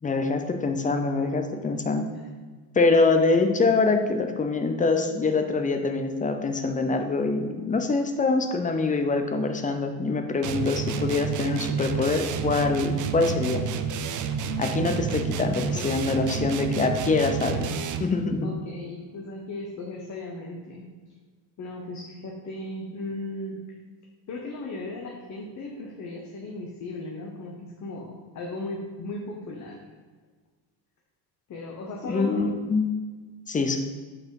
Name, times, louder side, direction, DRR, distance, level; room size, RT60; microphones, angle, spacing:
voice 1, 0.0-2.1 2.8-13.6 14.6-17.6 18.0-18.5 32.0-32.9 33.5-33.8, left 3 dB, 15° left, 6 dB, 0.5 m, -24 dB
sound 1, 10.4-18.2, right 6 dB, 45° right, 0.5 m, -29 dB
voice 2, 18.4-20.9 21.6-23.6 24.3-29.8 31.5-32.5, left 2 dB, 40° left, 0 dB, 0.9 m, -36 dB
4.8 x 4.3 x 4.8 m, 1.4 s
supercardioid pair, 95°, 46 cm